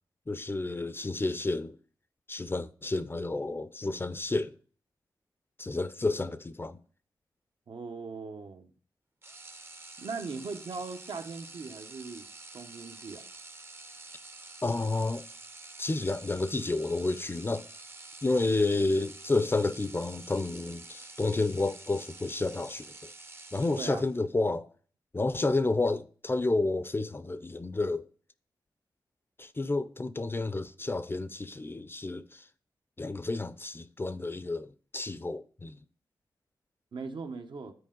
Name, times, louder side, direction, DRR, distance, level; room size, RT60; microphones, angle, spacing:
voice 1, 0.3-1.8 2.3-4.6 5.6-6.8 14.6-15.3 15.8-17.7 18.2-23.1 23.5-24.7 25.1-28.1 29.4-32.5 33.0-35.8, left 2 dB, 25° left, 0.5 m, -30 dB
voice 2, 7.7-8.7 10.0-12.3 12.5-13.2 23.8-24.1 36.9-37.7, right 4 dB, 70° right, 0.9 m, -39 dB
sound 1, 9.2-24.3, right 3 dB, 30° right, 0.6 m, -48 dB
9.7 x 4.3 x 3.8 m
cardioid pair, 55°, 8 cm